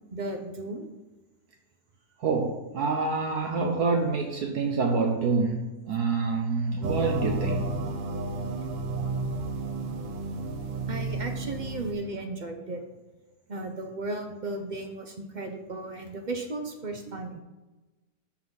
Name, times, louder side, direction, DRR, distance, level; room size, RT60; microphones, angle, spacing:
voice 1, 0.1-0.9 10.9-12.8 13.5-17.4, right 2 dB, 50° right, 4 dB, 0.5 m, -35 dB
voice 2, 2.2-7.7 17.1-17.2, right 4 dB, 65° right, 2 dB, 1.3 m, -27 dB
sound 1, 6.8-11.9, right 2 dB, 90° right, 1.6 m, -31 dB
13.0 x 4.6 x 3.8 m, 1.1 s
omnidirectional pair, 1.8 m